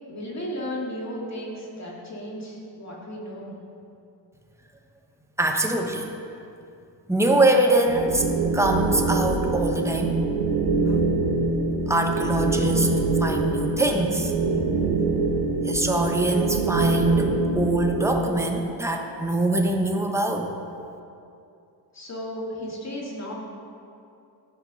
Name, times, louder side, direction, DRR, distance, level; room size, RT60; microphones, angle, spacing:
voice 1, 0.0-3.6 21.9-23.3, equal, 40° left, -3 dB, 2.7 m, -34 dB
voice 2, 5.4-6.1 7.1-8.2 8.5-10.2 10.9-11.0 11.9-14.3 15.6-20.5, right 1 dB, 5° right, 2 dB, 1.2 m, -24 dB
sound 1, 7.9-18.2, right 3 dB, 75° right, 2.1 m, -24 dB
13.5 x 5.3 x 6.4 m, 2.6 s
cardioid pair, 90°, 43 cm